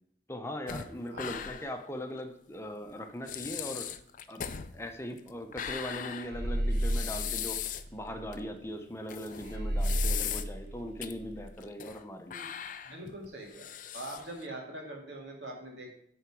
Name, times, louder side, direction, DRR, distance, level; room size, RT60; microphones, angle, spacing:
voice 1, 0.3-3.9 4.3-4.4 4.7-7.6 7.9-12.5, equal, 15° left, 5 dB, 0.8 m, -40 dB
sound 1, 0.7-1.8 2.2-2.3 2.9-3.0 3.3-7.9 8.3-8.4 9.1-10.7 11.0-11.1 11.6-12.0 12.3-14.5, left 9 dB, 45° left, 0.4 m, -39 dB
sound 2, 6.3-8.4 9.5-11.5, right 1 dB, 60° right, 0.8 m, -32 dB
voice 2, 12.8-13.7 13.9-15.9, right 1 dB, 85° right, 0 dB, 2.1 m, -43 dB
10.5 x 4.0 x 4.8 m, 0.72 s
head